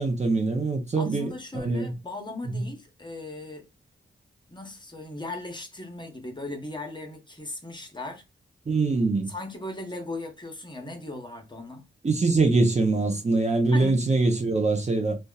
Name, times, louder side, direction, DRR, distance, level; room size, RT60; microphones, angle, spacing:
voice 1, 0.0-1.9 2.5-2.6 8.7-9.3 12.0-15.2, right 3 dB, 35° right, 0.6 m, -23 dB
voice 2, 1.0-3.7 4.5-8.2 9.3-11.8 13.7-14.0, left 2 dB, 20° left, 0.8 m, -37 dB
2.8 x 2.2 x 2.2 m
cardioid pair, 65°, 21 cm